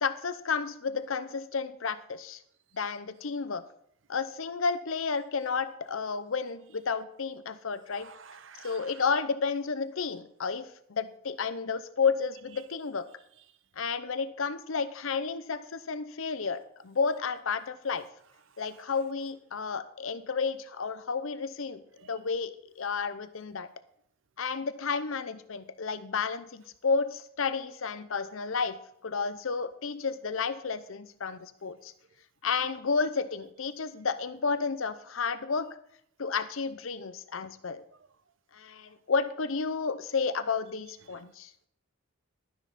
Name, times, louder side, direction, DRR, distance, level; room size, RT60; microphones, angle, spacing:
voice 1, 0.0-2.4 2.7-3.6 4.1-8.1 8.6-13.0 13.8-18.1 18.6-21.8 22.1-23.7 24.4-31.9 32.4-35.8 36.2-37.8 38.5-41.5, left 5 dB, 65° left, 12 dB, 0.7 m, -31 dB
voice 2, 8.0-8.9, right 6 dB, 60° right, 13 dB, 0.8 m, -50 dB
12.0 x 10.5 x 4.1 m, 0.69 s
head